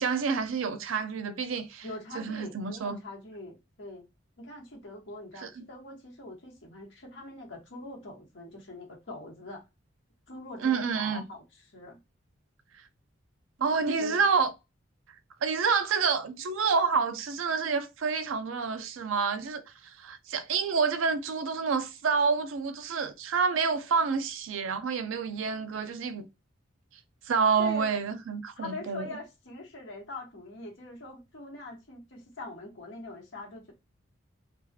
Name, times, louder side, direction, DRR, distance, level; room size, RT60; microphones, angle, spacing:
voice 1, 0.0-1.8 2.1-3.0 5.4-5.6 10.6-11.2 13.6-14.5 15.4-26.3 27.3-29.1, right 5 dB, 80° right, 0.4 m, -28 dB
voice 2, 1.8-4.0 4.4-9.6 10.3-11.4 11.7-12.0 14.0-14.2 27.6-27.9 28.6-33.7, left 2 dB, 65° left, 1.1 m, -43 dB
2.4 x 2.3 x 2.6 m
head